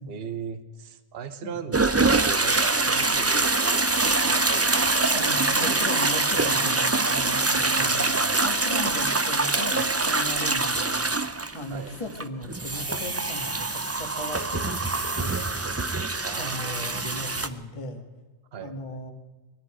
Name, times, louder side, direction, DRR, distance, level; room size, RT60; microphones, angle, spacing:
voice 1, 0.0-3.9 4.2-6.2 7.8-8.5 11.7-12.0 16.2-17.3 18.5-19.1, right 6 dB, 60° right, 11 dB, 1.1 m, -39 dB
sound 1, 1.7-17.5, right 3 dB, 20° right, 0.5 m, -24 dB
voice 2, 5.1-11.1 11.5-14.9 15.1-15.7 16.4-18.0 18.6-19.1, left 1 dB, 30° left, 4 dB, 1.7 m, -37 dB
20.5 x 13.5 x 4.9 m, 1.2 s
omnidirectional pair, 1.1 m